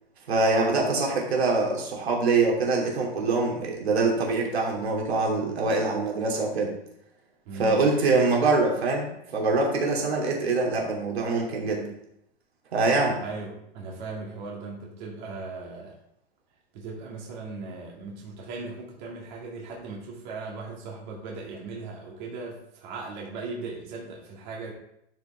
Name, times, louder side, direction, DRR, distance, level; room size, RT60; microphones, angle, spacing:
voice 1, 0.3-6.7 7.6-11.9 12.7-13.2, right 3 dB, 80° right, -1 dB, 2.8 m, -24 dB
voice 2, 7.5-7.8 13.2-15.9 16.7-24.7, right 3 dB, 50° right, -2 dB, 2.2 m, -38 dB
12.0 x 5.2 x 3.4 m, 0.77 s
hypercardioid pair, 130°, 31 cm